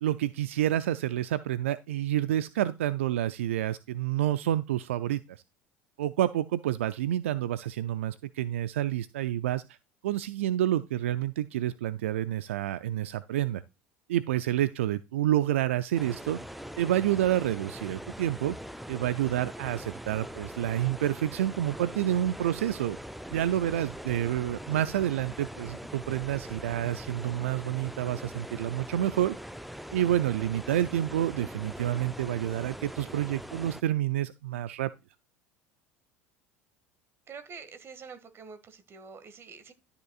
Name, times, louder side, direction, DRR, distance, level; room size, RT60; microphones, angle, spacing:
voice 1, 0.0-5.2 6.0-9.6 10.0-13.6 14.1-16.4 16.8-18.5 18.9-23.0 23.3-29.3 29.9-34.9, right 12 dB, 80° right, 0.4 m, -28 dB
sound 1, 15.9-33.8, equal, ahead, 0.5 m, -42 dB
voice 2, 37.3-39.7, right 5 dB, 35° right, 1.8 m, -46 dB
12.5 x 6.8 x 2.4 m
hypercardioid pair, 70°, 7 cm